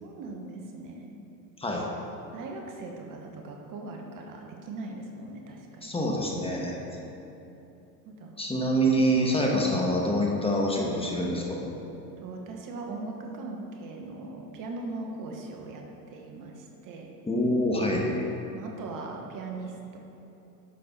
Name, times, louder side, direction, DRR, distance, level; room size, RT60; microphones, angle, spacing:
voice 1, 0.0-1.1 2.3-5.9 8.0-8.3 12.2-17.1 18.5-20.0, right 3 dB, 40° right, 2 dB, 1.3 m, -40 dB
voice 2, 5.8-6.7 8.4-11.6 17.3-18.1, equal, 10° left, -2 dB, 1.4 m, -26 dB
11.0 x 6.6 x 4.3 m, 2.9 s
hypercardioid pair, 85°, 49 cm